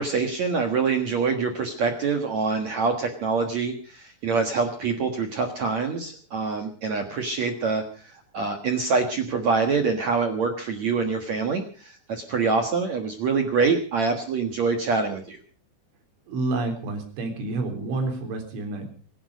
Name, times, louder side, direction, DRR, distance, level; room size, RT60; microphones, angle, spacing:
voice 1, 0.0-15.4, right 4 dB, 65° right, 5 dB, 1.8 m, -25 dB
voice 2, 16.3-18.9, right 2 dB, 80° right, 4 dB, 6.2 m, -29 dB
25.5 x 11.0 x 5.1 m, 0.40 s
omnidirectional pair, 5.5 m